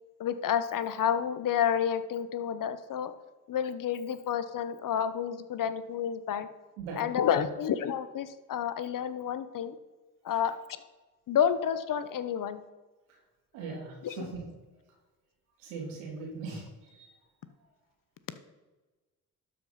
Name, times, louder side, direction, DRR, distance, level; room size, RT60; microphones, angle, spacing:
voice 1, 0.2-3.1 3.5-6.5 7.0-9.8 10.2-10.6 11.3-12.6 14.0-14.3, left 8 dB, 50° left, 12 dB, 0.9 m, -30 dB
voice 2, 6.8-7.4 10.3-10.4 13.5-14.3 15.6-16.6 16.9-17.1, right 4 dB, 80° right, -2 dB, 2.9 m, -40 dB
12.0 x 5.1 x 5.6 m, 1.2 s
hypercardioid pair, 45°, 42 cm